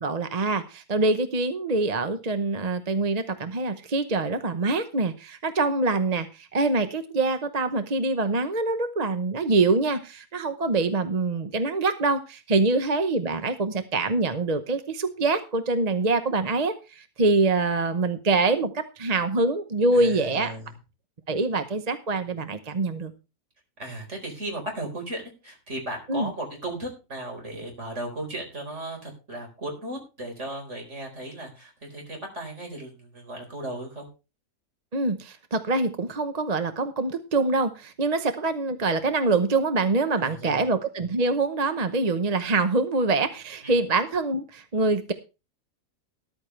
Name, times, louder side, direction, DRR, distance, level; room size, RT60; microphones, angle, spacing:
voice 1, 0.0-20.5 21.3-23.1 26.1-26.3 34.9-45.1, right 3 dB, 30° right, 9 dB, 0.9 m, -25 dB
voice 2, 19.9-20.8 23.8-34.1 40.2-40.6 43.6-43.7, right 1 dB, 50° right, 2 dB, 4.8 m, -36 dB
13.5 x 12.5 x 3.2 m, 0.30 s
omnidirectional pair, 1.6 m